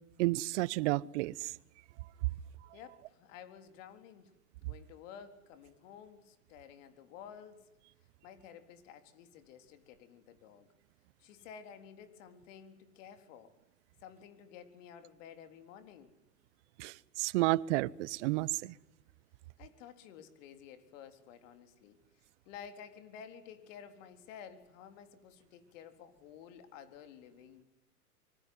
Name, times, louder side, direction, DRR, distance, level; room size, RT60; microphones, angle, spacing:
voice 1, 0.2-1.3 16.8-18.7, right 19 dB, 50° right, 0.9 m, -31 dB
voice 2, 2.7-4.3 4.6-7.7 8.2-10.7 11.2-13.5 14.0-16.2 19.6-27.6, left 8 dB, 55° left, 4.0 m, -52 dB
25.5 x 24.0 x 9.7 m
hypercardioid pair, 115°, 46 cm